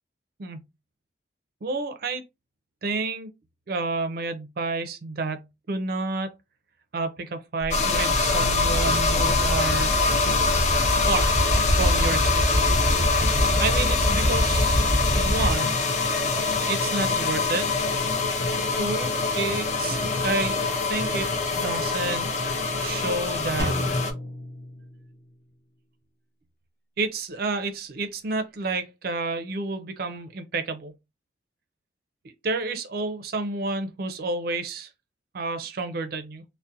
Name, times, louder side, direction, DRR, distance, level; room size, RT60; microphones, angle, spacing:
voice 1, 1.6-2.2 2.8-3.3 3.7-6.3 6.9-9.9 10.9-11.4 11.8-12.7 13.6-14.8 15.1-15.8 16.6-17.7 18.8-20.6 20.9-21.3 21.6-22.3 22.8-23.8 27.0-30.9 32.4-34.9 35.3-36.4, right 3 dB, 55° right, 0.4 m, -30 dB
sound 1, 7.6-15.6, equal, 60° left, 0.9 m, -25 dB
sound 2, 7.7-24.1, left 4 dB, 40° left, 0.4 m, -24 dB
Drum, 23.6-25.5, left 1 dB, 15° left, 0.7 m, -32 dB
2.4 x 2.1 x 2.6 m
head